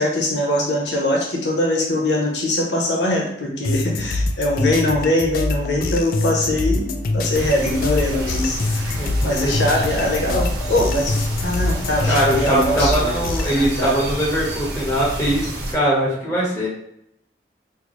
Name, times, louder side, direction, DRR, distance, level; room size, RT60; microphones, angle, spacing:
voice 1, 0.0-13.2 13.5-14.0, left 1 dB, 85° left, -1 dB, 0.9 m, -22 dB
sound 1, 3.6-13.6, left 2 dB, 50° left, 0.3 m, -25 dB
sound 2, 7.3-15.7, right 1 dB, 70° right, 1.0 m, -29 dB
voice 2, 12.1-16.7, right 1 dB, 15° left, -6 dB, 1.1 m, -21 dB
4.5 x 2.1 x 3.0 m, 0.75 s
head